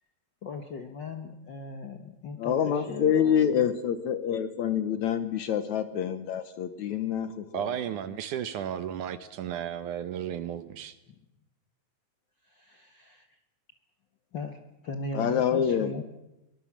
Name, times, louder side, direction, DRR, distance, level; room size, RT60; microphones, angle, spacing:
voice 1, 0.4-3.5 12.4-13.2 14.3-16.0, left 3 dB, 90° left, 6 dB, 0.9 m, -38 dB
voice 2, 2.4-7.7 15.1-15.9, left 8 dB, 65° left, 11 dB, 2.1 m, -27 dB
voice 3, 7.5-10.9, right 10 dB, 70° right, 12 dB, 2.2 m, -34 dB
23.0 x 20.0 x 7.4 m, 0.94 s
omnidirectional pair, 4.2 m